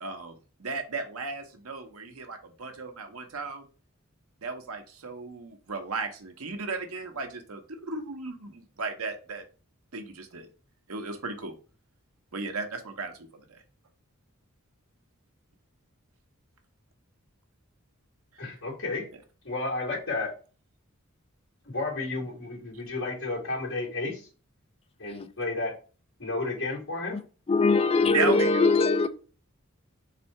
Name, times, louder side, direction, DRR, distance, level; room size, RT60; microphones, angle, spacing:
voice 1, 0.0-3.7 4.4-9.4 9.9-10.5 10.9-11.5 12.3-13.6 18.3-18.4 28.1-28.7, right 4 dB, 90° right, 0.9 m, -35 dB
voice 2, 18.4-19.1 19.4-20.3 21.7-24.3 25.0-25.7 26.2-27.2, left 2 dB, 65° left, 2.3 m, -32 dB
voice 3, 27.5-29.1, left 3 dB, 25° left, 0.4 m, -21 dB
4.1 x 2.7 x 4.3 m
head